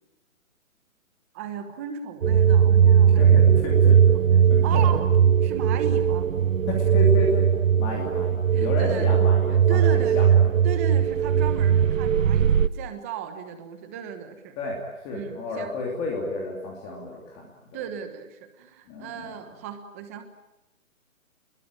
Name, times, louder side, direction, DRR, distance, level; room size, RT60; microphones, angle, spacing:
voice 1, 1.3-3.4 4.1-4.2 4.6-5.0 5.4-6.3 7.9-8.1 8.5-9.1 9.5-14.6 15.1-15.7 17.7-20.2, right 8 dB, 10° right, 8 dB, 1.2 m, -36 dB
sound 1, 2.2-12.7, right 8 dB, 70° right, 1.0 m, -19 dB
voice 2, 3.2-4.0 4.5-4.8 6.7-7.5 7.8-10.5 14.6-17.5 18.9-19.3, left 2 dB, 15° left, -1 dB, 2.8 m, -31 dB
29.5 x 21.5 x 8.9 m, 0.99 s
hypercardioid pair, 170°, 42 cm